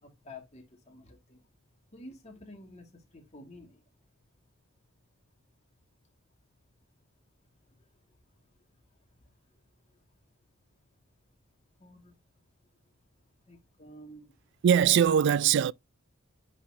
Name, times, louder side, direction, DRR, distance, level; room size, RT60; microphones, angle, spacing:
voice 1, 0.0-1.5 1.9-3.8 7.7-7.9 9.2-9.3 9.8-10.0 11.8-12.2 13.5-14.3, left 1 dB, 30° left, 2.1 m, -50 dB
voice 2, 14.6-15.7, right 8 dB, 55° right, 0.3 m, -21 dB
9.8 x 4.3 x 2.8 m
head